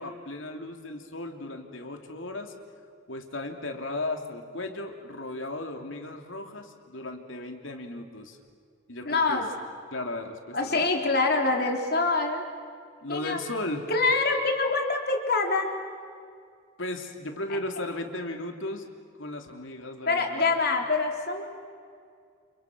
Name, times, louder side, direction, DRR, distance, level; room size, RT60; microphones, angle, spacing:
voice 1, 0.0-2.5 3.1-8.4 8.9-9.5 9.9-10.9 13.0-13.9 16.8-18.9 19.2-20.6, left 2 dB, 70° left, 4 dB, 3.0 m, -36 dB
voice 2, 9.1-9.5 10.5-12.5 13.1-13.4 13.9-15.7 20.1-21.4, left 3 dB, 50° left, 2 dB, 3.6 m, -25 dB
29.5 x 29.5 x 6.2 m, 2.2 s
head